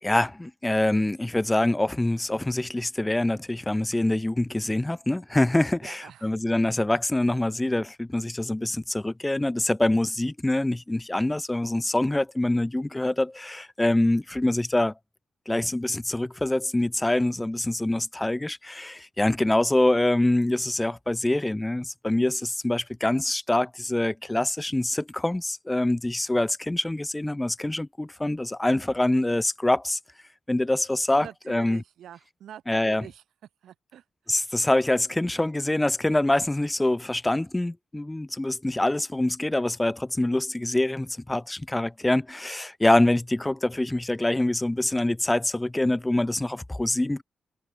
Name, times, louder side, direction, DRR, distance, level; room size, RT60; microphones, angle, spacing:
voice 1, 0.0-14.9 15.5-30.0 30.5-31.8 32.7-33.0 34.3-47.2, left 1 dB, 15° left, 0.3 m, -25 dB
voice 2, 5.8-6.4 31.2-33.2 33.6-34.4, right 10 dB, 80° right, 5.5 m, -45 dB
cardioid pair, 60°, 0 cm